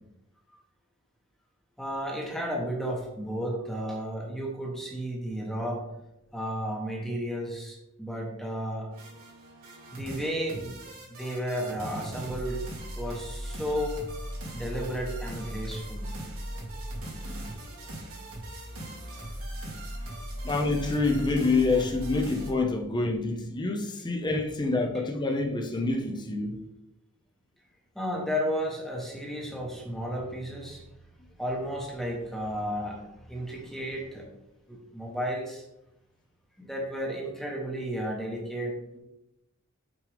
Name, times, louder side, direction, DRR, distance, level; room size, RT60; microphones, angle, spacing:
voice 1, 1.8-5.8 6.3-8.9 9.9-10.8 11.1-12.6 13.0-14.0 14.5-16.1 24.9-25.0 27.9-30.8 31.4-34.3 34.7-35.6 36.6-39.0, equal, ahead, 1.1 m, -33 dB
sound 1, 8.9-22.5, right 1 dB, 80° right, 2.0 m, -38 dB
voice 2, 20.4-26.6, left 3 dB, 20° left, 0.7 m, -27 dB
6.0 x 5.2 x 3.4 m
head